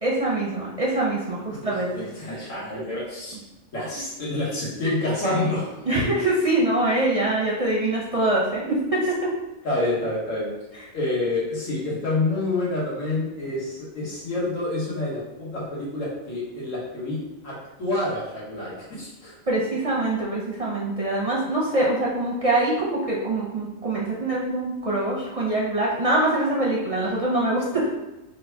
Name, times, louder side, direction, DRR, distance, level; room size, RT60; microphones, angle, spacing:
voice 1, 0.0-2.3 3.3-3.4 5.9-9.3 19.5-28.0, right 2 dB, 40° right, -5 dB, 0.5 m, -24 dB
voice 2, 1.5-3.4 3.7-5.7 9.6-10.5 10.9-19.3, left 2 dB, 85° left, -6 dB, 1.8 m, -28 dB
3.8 x 2.2 x 4.5 m, 0.99 s
omnidirectional pair, 1.3 m